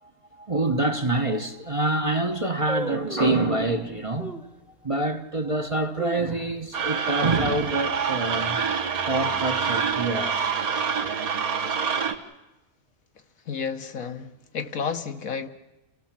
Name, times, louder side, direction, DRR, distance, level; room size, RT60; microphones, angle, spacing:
voice 1, 0.0-4.5 4.8-8.6 8.9-10.5, right 2 dB, 25° right, 1.0 m, -26 dB
sound 1, 0.7-0.8 1.4-1.5 1.7-2.1 2.7-3.4 4.2-4.6 5.1-5.2 5.7-6.9 7.2-7.3 7.6-8.0 8.4-8.7 9.3-10.1 10.4-10.5, equal, ahead, 1.2 m, -36 dB
sound 2, 6.7-12.1, right 6 dB, 80° right, 2.0 m, -26 dB
voice 2, 13.5-15.5, left 6 dB, 70° left, 1.6 m, -31 dB
29.0 x 17.0 x 7.4 m
omnidirectional pair, 1.5 m